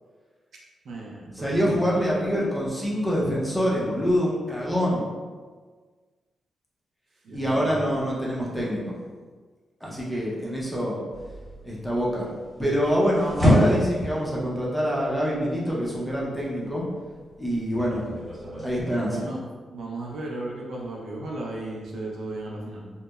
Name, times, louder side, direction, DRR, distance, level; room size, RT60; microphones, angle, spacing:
voice 1, 0.8-2.1 7.2-7.9 19.0-19.4 19.7-22.9, right 2 dB, 70° right, -3 dB, 0.4 m, -35 dB
voice 2, 1.4-5.0 7.3-8.9 9.8-11.0 11.6-12.3 12.6-16.8 17.4-18.0 18.6-19.3, equal, 5° left, -6 dB, 0.5 m, -25 dB
sound 1, 11.1-18.7, equal, 15° right, 0.8 m, -29 dB
2.8 x 2.0 x 2.2 m, 1.5 s
wide cardioid pair, 145°, 0 cm